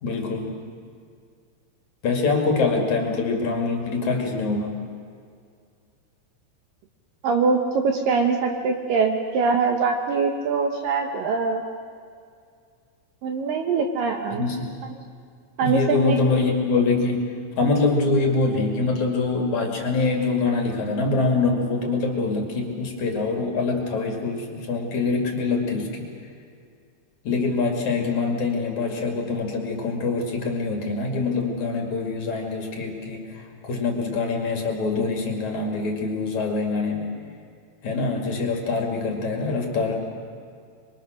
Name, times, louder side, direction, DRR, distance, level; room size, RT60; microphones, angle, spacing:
voice 1, 0.0-0.5 2.0-4.7 14.3-14.7 15.6-26.1 27.2-37.1 37.8-40.0, left 3 dB, 50° left, 2 dB, 3.2 m, -24 dB
voice 2, 7.2-11.6 13.2-14.4 15.6-16.2, right 4 dB, 70° right, 4 dB, 2.3 m, -23 dB
26.0 x 23.0 x 6.4 m, 2.2 s
omnidirectional pair, 4.9 m